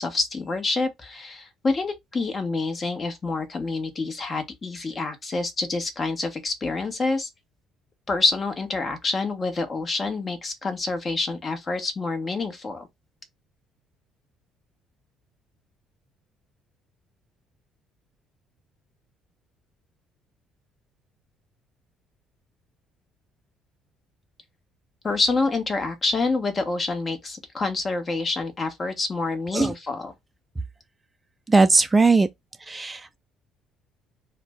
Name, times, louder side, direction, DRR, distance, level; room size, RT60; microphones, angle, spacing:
voice 1, 0.0-7.3 8.1-12.9 25.0-30.1, left 3 dB, 35° left, 1.0 m, -27 dB
voice 2, 31.5-32.3 32.7-33.2, right 3 dB, 20° right, 0.4 m, -19 dB
2.5 x 2.1 x 3.4 m
supercardioid pair, 65°, 0 cm